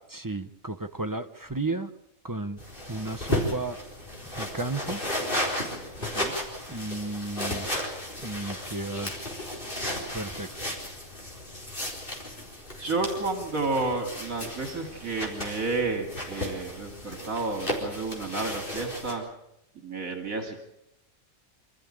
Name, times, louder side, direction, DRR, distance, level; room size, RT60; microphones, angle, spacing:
voice 1, 0.1-1.9 2.2-2.6 2.9-3.8 4.4-5.0 6.7-7.7 8.2-9.3 10.1-10.5, right 2 dB, 20° right, 8 dB, 0.7 m, -33 dB
sound 1, 2.6-19.1, left 1 dB, 35° left, 4.5 m, -34 dB
voice 2, 12.8-19.3 19.8-20.6, right 3 dB, 65° right, 5 dB, 3.0 m, -31 dB
25.5 x 14.0 x 8.7 m, 0.82 s
omnidirectional pair, 1.5 m